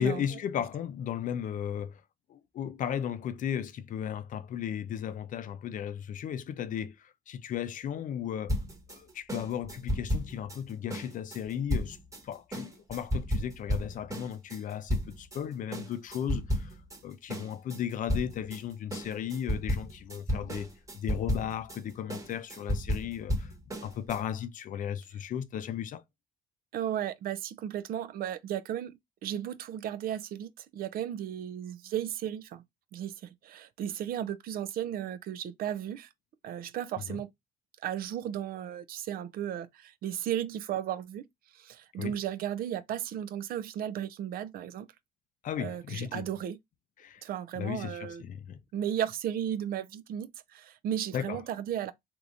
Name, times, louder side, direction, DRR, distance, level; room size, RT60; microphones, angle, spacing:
voice 1, 0.0-2.0 2.3-8.5 8.9-12.0 12.2-16.7 17.0-20.7 20.9-23.5 23.8-26.0 37.0-37.2 42.0-42.2 45.4-46.3 47.0-47.2 47.5-48.6 51.1-51.4, left 9 dB, 50° left, 0.5 m, -35 dB
sound 1, 8.5-15.4 15.7-17.0 17.3-24.2, equal, 20° right, 1.2 m, -33 dB
voice 2, 26.7-32.6 32.9-36.1 36.4-37.3 37.8-41.3 41.6-44.9 45.6-46.6 47.2-48.2 48.7-51.9, right 10 dB, 60° right, 0.5 m, -35 dB
3.4 x 2.9 x 2.5 m
cardioid pair, 110°, 17 cm